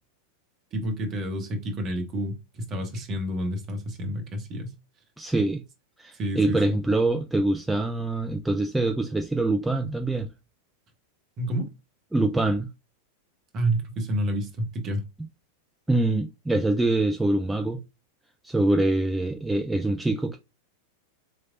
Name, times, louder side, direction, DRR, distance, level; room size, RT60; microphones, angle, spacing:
voice 1, 0.7-4.7 6.1-6.8 11.4-11.7 13.5-15.0, right 1 dB, 30° right, 1.0 m, -29 dB
voice 2, 5.2-5.6 6.0-10.3 12.1-12.7 15.9-17.8 18.4-20.4, right 2 dB, 5° right, 0.3 m, -24 dB
4.1 x 3.2 x 2.5 m
figure-of-eight pair, 90°, 0 cm